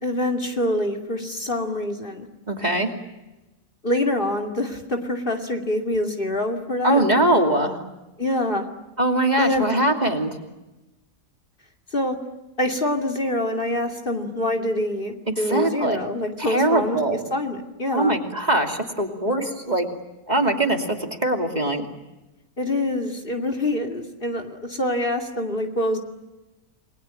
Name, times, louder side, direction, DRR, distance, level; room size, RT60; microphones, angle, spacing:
voice 1, 0.0-2.3 3.8-7.0 8.2-8.7 9.4-9.7 11.9-12.2 12.6-18.1 22.6-26.0, left 1 dB, 35° left, 3 dB, 2.7 m, -25 dB
voice 2, 2.5-2.9 6.8-7.8 9.0-10.4 15.3-16.0 16.4-17.2 17.9-19.9 20.3-21.8, right 1 dB, 25° right, 4 dB, 2.9 m, -22 dB
29.0 x 22.0 x 9.1 m, 1.0 s
omnidirectional pair, 1.6 m